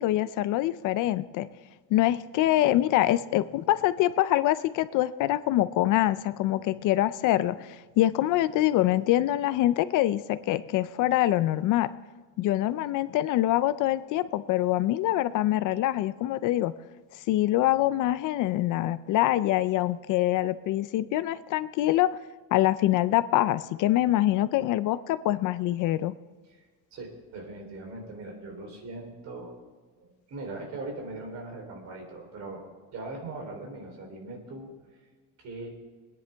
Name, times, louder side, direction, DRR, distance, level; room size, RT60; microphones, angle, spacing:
voice 1, 0.0-1.5 1.9-11.9 12.4-16.7 17.3-22.2 22.5-26.1, left 14 dB, 60° left, 14 dB, 0.5 m, -25 dB
voice 2, 26.9-29.5 30.0-32.6 32.9-34.7 35.4-35.7, right 2 dB, 50° right, 2 dB, 3.6 m, -40 dB
23.0 x 10.0 x 3.4 m, 1.4 s
cardioid pair, 175°, 36 cm